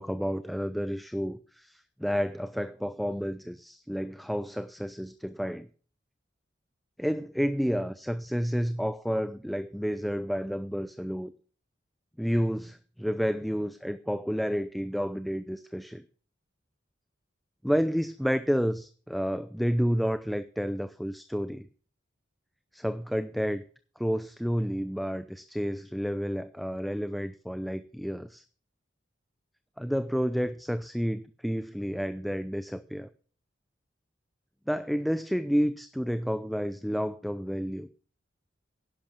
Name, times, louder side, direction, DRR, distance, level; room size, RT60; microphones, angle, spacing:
voice 1, 0.0-5.7 7.0-11.3 12.2-16.0 17.6-21.7 22.7-23.6 24.0-28.4 29.8-33.1 34.7-37.9, equal, ahead, 12 dB, 0.5 m, -30 dB
11.0 x 10.5 x 6.1 m, 0.41 s
head